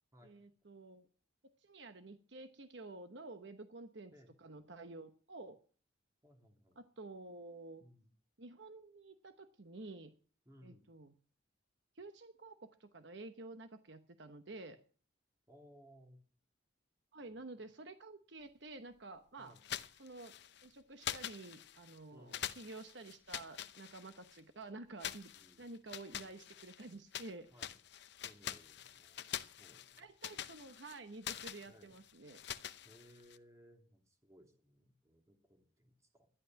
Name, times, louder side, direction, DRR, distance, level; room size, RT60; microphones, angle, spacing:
voice 1, 0.2-1.1 1.6-4.1 4.4-5.6 6.8-7.8 8.4-10.1 10.6-11.1 12.0-14.8 17.1-19.5 20.0-20.3 20.6-25.3 25.6-27.5 30.0-32.4, right 2 dB, 60° right, 9 dB, 1.0 m, -51 dB
voice 2, 6.2-6.8 7.8-8.1 10.4-10.9 15.5-16.2 17.2-17.6 19.4-19.6 22.1-22.5 25.4-25.7 27.5-27.8 28.2-30.0 31.7-32.0 32.8-36.3, equal, 15° right, 3 dB, 2.8 m, -63 dB
sound 1, 19.6-20.7 21.0-22.0 22.3-24.4 25.0-27.3 27.6-33.4, left 10 dB, 60° left, 0.7 m, -45 dB
13.0 x 11.0 x 5.8 m, 0.42 s
head